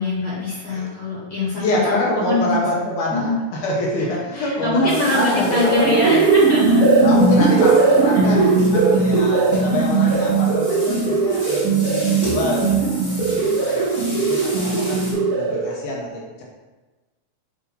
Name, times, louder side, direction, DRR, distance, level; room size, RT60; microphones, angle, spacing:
voice 1, 0.0-2.8 3.1-3.4 4.3-6.8 7.5-7.6 8.1-8.5 13.2-13.6, left 1 dB, 60° left, -6 dB, 2.0 m, -23 dB
voice 2, 1.6-6.2 7.0-12.9 13.3-16.4, left 1 dB, 80° left, -3 dB, 2.4 m, -26 dB
sound 1, 4.9-15.1, equal, 15° left, 0.9 m, -36 dB
sound 2, 5.3-15.8, right 4 dB, 65° right, 1.5 m, -18 dB
6.9 x 2.6 x 5.4 m, 1.2 s
omnidirectional pair, 3.6 m